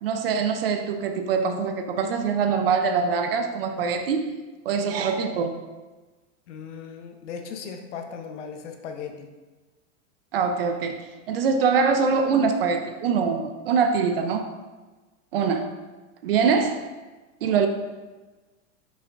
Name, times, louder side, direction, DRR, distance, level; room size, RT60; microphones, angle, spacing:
voice 1, 0.0-4.4 4.7-5.5 10.3-14.5 15.3-15.7 16.2-16.8 17.4-17.7, right 5 dB, 45° right, 6 dB, 0.4 m, -23 dB
voice 2, 6.5-9.3, left 6 dB, 55° left, 6 dB, 0.8 m, -37 dB
5.8 x 4.8 x 3.4 m, 1.3 s
supercardioid pair, 165°, 42 cm